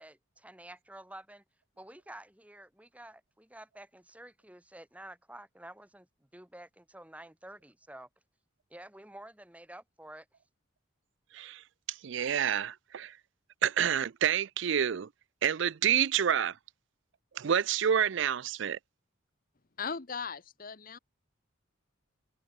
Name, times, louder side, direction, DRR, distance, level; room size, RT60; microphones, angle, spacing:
voice 1, 0.0-1.4 1.8-6.1 6.3-8.1 8.7-10.2, right 1 dB, 5° right, 1.7 m, -50 dB
voice 2, 11.9-13.1 13.6-15.1 15.4-16.6 17.4-18.8, right 8 dB, 60° right, 0.4 m, -28 dB
voice 3, 19.8-21.0, left 5 dB, 40° left, 1.0 m, -38 dB
head